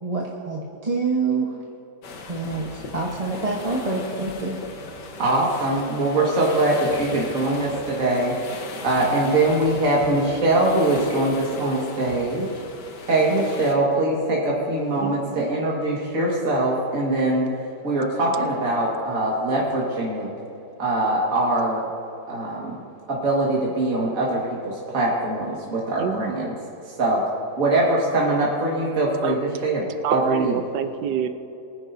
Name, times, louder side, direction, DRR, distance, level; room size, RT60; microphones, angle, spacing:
voice 1, 0.0-1.6 2.3-4.6, right 3 dB, 25° right, -3 dB, 1.1 m, -26 dB
sound 1, 2.0-13.7, left 3 dB, 85° left, 1.8 m, -38 dB
voice 2, 5.2-8.4 8.8-12.5 13.1-17.5 17.8-20.3 20.8-21.8 22.3-22.8 23.1-26.5 27.0-27.2 27.6-29.9 30.1-30.6, right 2 dB, 50° right, -4 dB, 2.2 m, -22 dB
voice 3, 15.0-15.4 26.0-26.4 29.2-29.4 30.0-31.3, right 9 dB, 85° right, 9 dB, 1.3 m, -27 dB
23.5 x 10.0 x 2.7 m, 2.9 s
omnidirectional pair, 1.8 m